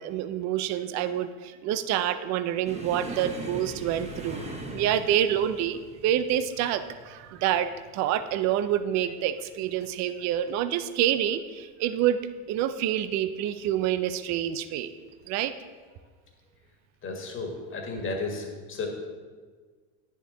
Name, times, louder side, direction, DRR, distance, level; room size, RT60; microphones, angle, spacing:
voice 1, 0.0-4.4 4.7-12.2 12.5-14.9 15.3-15.5, right 11 dB, 40° right, 12 dB, 0.5 m, -27 dB
sound 1, 2.6-9.9 10.2-10.5 10.9-11.0 11.9-12.4 13.4-13.6 15.0-15.1, right 2 dB, 15° right, 1.1 m, -41 dB
voice 2, 17.0-18.9, left 3 dB, 30° left, 1 dB, 1.8 m, -33 dB
10.0 x 6.5 x 3.9 m, 1.5 s
supercardioid pair, 115°, 44 cm